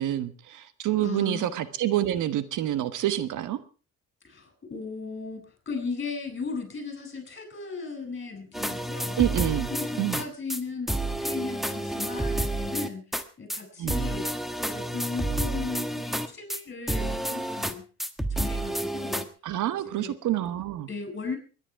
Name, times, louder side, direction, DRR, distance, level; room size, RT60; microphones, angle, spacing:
voice 1, 0.0-3.6 9.2-9.7 10.0-10.2 13.8-14.0 19.4-20.9, right 12 dB, 80° right, 13 dB, 1.3 m, -27 dB
voice 2, 1.0-1.5 4.2-9.2 9.7-13.1 13.4-14.3 14.6-17.8 18.3-19.3 19.8-20.1 20.9-21.4, left 4 dB, 40° left, 6 dB, 6.9 m, -36 dB
sound 1, 8.5-10.2 10.5-10.6 10.9-13.2 13.5-13.6 13.9-16.6 16.9-17.7 18.0-19.2, right 1 dB, ahead, 1.5 m, -30 dB
22.0 x 10.5 x 4.7 m, 0.37 s
cardioid pair, 90°, 30 cm